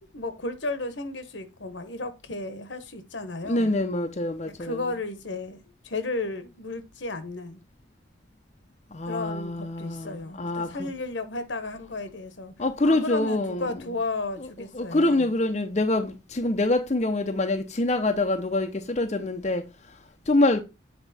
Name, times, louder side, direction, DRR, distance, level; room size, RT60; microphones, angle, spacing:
voice 1, 0.0-3.8 4.5-7.6 9.1-12.5 12.8-15.3, left 2 dB, 75° left, 1.2 m, -34 dB
voice 2, 3.5-4.8 8.9-10.9 12.6-13.7 14.7-20.0 20.3-20.6, left 2 dB, 35° left, 0.6 m, -25 dB
8.1 x 4.4 x 4.1 m
head